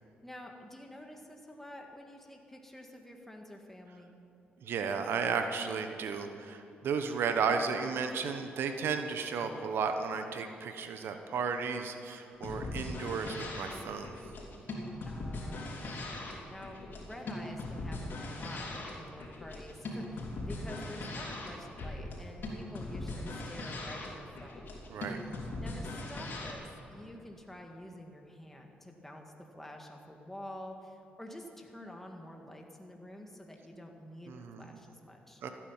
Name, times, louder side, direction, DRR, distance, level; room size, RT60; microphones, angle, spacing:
voice 1, 0.2-4.1 15.0-24.7 25.6-35.4, left 1 dB, 5° left, 2 dB, 1.9 m, -48 dB
voice 2, 4.6-14.1 24.9-25.2 34.3-34.6 35.4-35.5, right 5 dB, 70° right, 7 dB, 1.1 m, -34 dB
sound 1, 12.3-26.5, left 2 dB, 60° left, 3.5 m, -40 dB
15.5 x 9.7 x 7.3 m, 2.9 s
cardioid pair, 70°, 4 cm